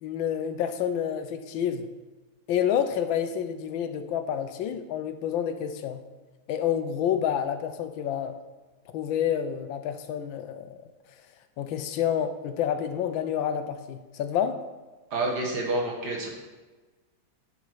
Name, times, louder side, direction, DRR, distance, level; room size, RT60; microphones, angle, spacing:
voice 1, 0.0-1.9 2.5-6.0 6.5-8.3 8.9-10.8 11.6-14.6, left 9 dB, 85° left, 9 dB, 1.5 m, -28 dB
voice 2, 15.1-16.3, right 2 dB, 60° right, -1 dB, 1.9 m, -28 dB
11.0 x 5.3 x 4.7 m, 1.2 s
omnidirectional pair, 2.1 m